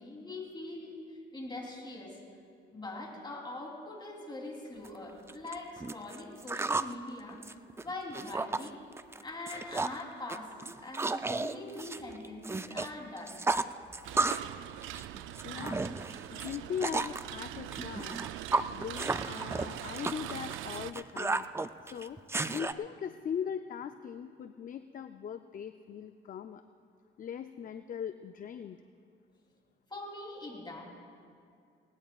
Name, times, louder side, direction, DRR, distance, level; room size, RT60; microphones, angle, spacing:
voice 1, 0.0-2.2 2.7-7.4 7.8-8.8 9.2-13.7 29.9-30.8, left 2 dB, 20° left, -1 dB, 3.3 m, -43 dB
sound 1, 4.8-4.9 5.3-6.9 7.3-8.7 9.0-9.2 9.5-10.0 10.3-12.9 13.2-14.5 14.8-17.2 17.7-22.7, right 3 dB, 15° right, 0.4 m, -33 dB
sound 2, 14.0-20.9, right 12 dB, 85° right, 0.4 m, -42 dB
voice 2, 15.4-15.9 16.3-18.3 18.7-21.5 21.8-22.2 22.5-26.6 27.2-28.8, left 8 dB, 45° left, 9 dB, 0.5 m, -40 dB
19.5 x 18.5 x 2.4 m, 2.3 s
cardioid pair, 90°, 20 cm